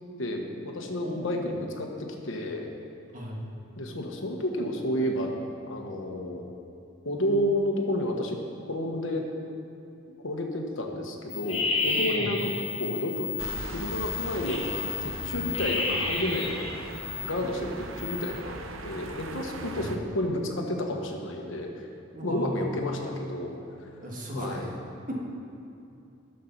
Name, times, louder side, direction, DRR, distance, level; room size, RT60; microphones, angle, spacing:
voice 1, 0.2-2.7 3.8-5.3 5.7-6.5 7.0-8.4 8.7-9.3 10.2-12.5 12.8-13.3 13.7-16.7 17.2-21.9 22.2-23.5 23.8-23.9 24.3-24.7, left 1 dB, 70° left, 2 dB, 1.2 m, -31 dB
voice 2, 1.0-1.8 3.1-3.4 12.1-12.3 19.8-19.9 22.1-23.2 24.0-24.7 25.1-25.2, equal, 40° right, -2 dB, 1.6 m, -37 dB
sound 1, 11.3-17.4 17.7-18.4, left 3 dB, 30° left, 1.9 m, -31 dB
sound 2, 13.4-20.0, right 2 dB, 75° right, 0.7 m, -39 dB
12.0 x 6.7 x 5.9 m, 2.7 s
head